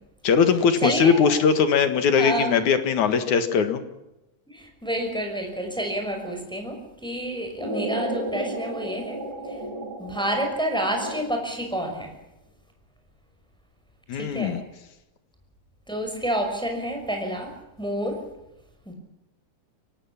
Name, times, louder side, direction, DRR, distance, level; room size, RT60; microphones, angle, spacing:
voice 1, 0.2-3.8 14.1-14.6, left 6 dB, 70° left, 9 dB, 3.2 m, -20 dB
voice 2, 0.8-1.3 2.2-2.6 4.5-9.6 10.0-12.1 14.2-14.6 15.9-17.5 17.8-18.2 18.9-19.0, right 1 dB, ahead, 3 dB, 5.7 m, -29 dB
sound 1, 7.6-11.6, right 1 dB, 60° right, 6.7 m, -33 dB
24.5 x 18.0 x 7.3 m, 0.90 s
omnidirectional pair, 3.5 m